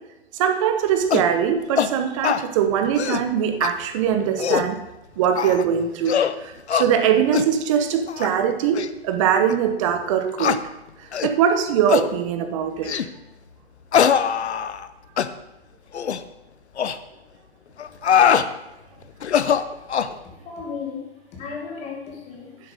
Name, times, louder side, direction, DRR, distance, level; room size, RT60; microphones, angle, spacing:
voice 1, 0.3-4.8 5.2-10.7 11.0-13.0, right 8 dB, 30° right, 7 dB, 0.9 m, -22 dB
sound 1, 1.1-1.3 1.8-1.9 2.2-2.4 2.9-3.3 3.6-3.7 4.2-4.7 5.4-5.7 6.1-6.4 6.7-6.9 7.3-7.5 8.1-8.3 8.7-8.9 9.5-9.6 10.4-10.6 11.1-11.3 11.9-12.1 12.8-13.1 13.9-14.9 15.2-15.3 15.9-16.2 16.8-17.0 17.8-18.5 19.2-20.1, left 8 dB, 80° left, 0.7 m, -21 dB
voice 2, 20.2-21.0 21.3-22.5, left 5 dB, 20° left, -1 dB, 2.1 m, -34 dB
10.0 x 7.6 x 5.1 m, 0.94 s
hypercardioid pair, 140°, 33 cm